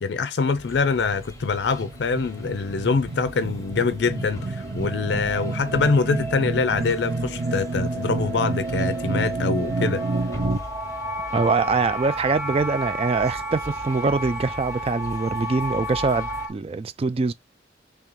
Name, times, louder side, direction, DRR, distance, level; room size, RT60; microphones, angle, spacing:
voice 1, 0.0-10.0, left 4 dB, 70° left, 0.4 m, -24 dB
sound 1, 0.5-16.5, left 2 dB, 15° left, 0.8 m, -41 dB
sound 2, 1.1-10.6, right 3 dB, 65° right, 0.6 m, -29 dB
sound 3, 3.7-16.5, right 1 dB, 15° right, 0.8 m, -33 dB
voice 2, 11.3-17.3, right 4 dB, 30° right, 0.3 m, -24 dB
3.3 x 2.9 x 3.7 m
head